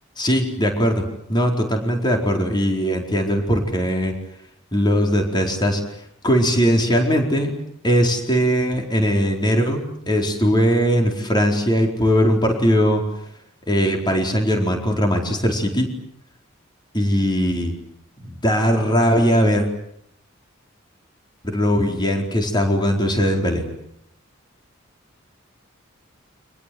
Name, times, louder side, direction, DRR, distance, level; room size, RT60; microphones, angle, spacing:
voice 1, 0.2-1.0 1.3-4.1 4.7-5.8 6.2-7.5 7.8-13.0 13.7-15.9 16.9-17.7 18.2-19.7 21.4-23.6, equal, 20° left, 2 dB, 4.5 m, -20 dB
30.0 x 25.5 x 7.9 m, 0.74 s
head